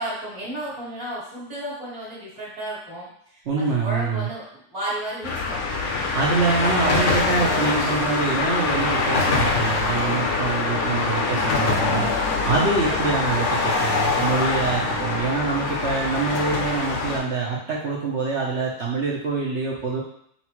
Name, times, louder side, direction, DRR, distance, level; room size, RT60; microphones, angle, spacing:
voice 1, 0.0-3.1 3.6-6.3 6.6-7.2 10.7-11.3 12.9-13.1, right 1 dB, 25° right, -8 dB, 1.7 m, -33 dB
voice 2, 3.5-4.3 6.1-12.1 12.4-20.0, right 4 dB, 55° right, -4 dB, 0.8 m, -25 dB
sound 1, 5.2-17.2, left 3 dB, 70° left, 0.7 m, -24 dB
5.6 x 2.5 x 2.9 m, 0.67 s
omnidirectional pair, 1.9 m